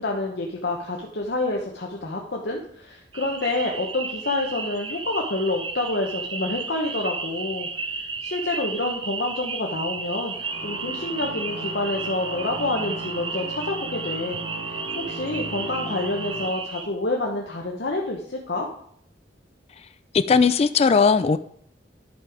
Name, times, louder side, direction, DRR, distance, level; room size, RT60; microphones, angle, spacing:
voice 1, 0.0-7.7 8.2-10.3 10.6-18.7, left 2 dB, 60° left, -1 dB, 1.0 m, -28 dB
sound 1, 3.1-16.9, right 4 dB, 25° right, 0.6 m, -33 dB
sound 2, 10.3-16.5, right 2 dB, 45° right, 4.5 m, -37 dB
voice 2, 20.3-21.4, left 5 dB, 35° left, 13 dB, 0.3 m, -18 dB
10.5 x 5.5 x 4.9 m, 0.66 s
head